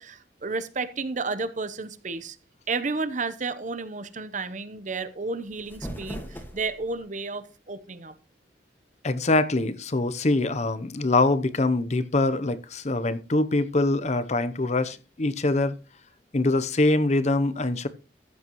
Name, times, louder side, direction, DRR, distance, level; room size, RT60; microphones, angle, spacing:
voice 1, 0.0-2.4 2.7-8.1, right 3 dB, 45° right, 0.9 m, -32 dB
sound 1, 5.4-7.0, equal, 10° left, 1.9 m, -39 dB
voice 2, 9.0-15.8 16.3-17.9, left 2 dB, 40° left, 0.7 m, -24 dB
14.0 x 8.7 x 3.1 m
head